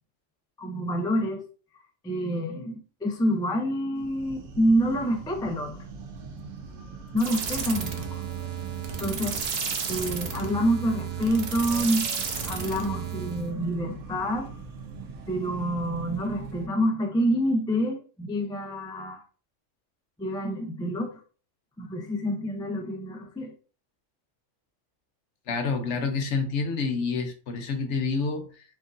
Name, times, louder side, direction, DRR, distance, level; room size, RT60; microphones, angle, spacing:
voice 1, 0.6-1.5 2.0-5.8 7.1-8.2 9.0-9.4 9.9-12.1 12.4-14.5 15.3-19.2 20.2-21.2 21.8-23.5, equal, 5° left, 0.4 m, -27 dB
sound 1, 3.9-16.7, right 5 dB, 85° right, 1.1 m, -42 dB
sound 2, 7.2-13.5, right 6 dB, 60° right, 0.9 m, -32 dB
voice 2, 25.5-28.6, left 4 dB, 70° left, 1.1 m, -28 dB
4.5 x 3.7 x 2.6 m
omnidirectional pair, 1.3 m